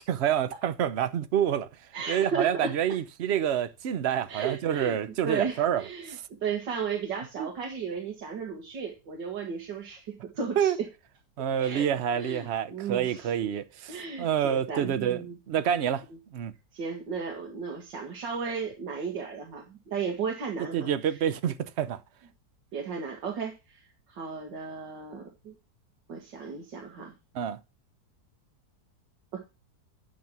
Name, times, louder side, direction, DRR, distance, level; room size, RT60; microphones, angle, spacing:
voice 1, 0.1-1.7 2.1-6.2 7.4-7.5 10.6-10.8 11.4-16.0 16.3-16.5 20.7-22.0 27.3-27.6, right 9 dB, 55° right, 0.8 m, -28 dB
voice 2, 1.9-2.7 4.3-5.0 5.3-10.7 11.6-11.8 12.2-13.5 13.9-15.4 16.7-21.3 22.7-25.5 26.1-27.1 29.3-29.4, right 6 dB, 90° right, 2.3 m, -35 dB
9.4 x 6.0 x 6.0 m
omnidirectional pair, 1.9 m